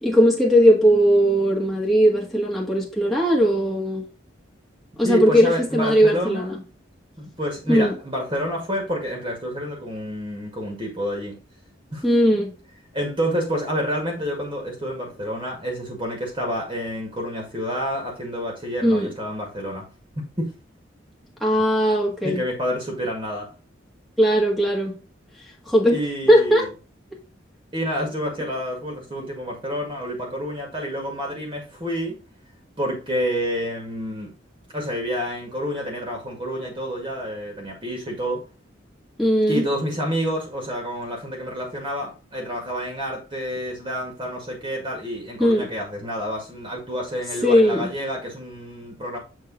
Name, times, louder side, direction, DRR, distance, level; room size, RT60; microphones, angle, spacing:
voice 1, 0.0-4.0 5.0-6.6 7.7-7.9 12.0-12.5 18.8-19.1 21.4-22.4 24.2-25.0 25.6-26.0 26.3-26.7 39.2-39.6 45.4-45.7 47.4-47.9, equal, ahead, 1.7 m, -18 dB
voice 2, 5.0-6.5 7.2-11.4 11.9-12.0 12.9-19.9 20.4-20.5 22.2-23.5 25.9-26.7 27.7-32.2 32.8-34.3 34.7-38.4 39.5-49.2, equal, 25° right, 1.8 m, -28 dB
7.3 x 3.8 x 3.9 m
head